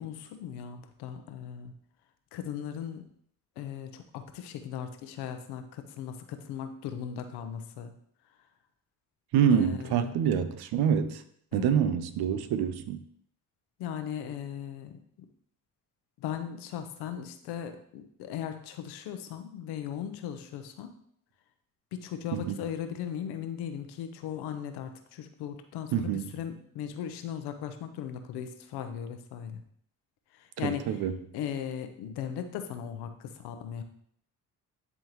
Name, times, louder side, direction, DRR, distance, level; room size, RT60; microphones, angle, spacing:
voice 1, 0.0-1.7 2.3-3.0 3.6-7.9 9.5-10.1 11.5-11.7 13.8-15.0 16.2-20.9 21.9-29.6 30.3-30.9 31.3-33.8, left 9 dB, 85° left, 0.8 m, -38 dB
voice 2, 9.3-11.2 11.5-13.0 22.3-22.6 25.9-26.3 30.6-31.2, right 8 dB, 75° right, 0.7 m, -26 dB
10.5 x 3.7 x 3.0 m
supercardioid pair, 60°, 38 cm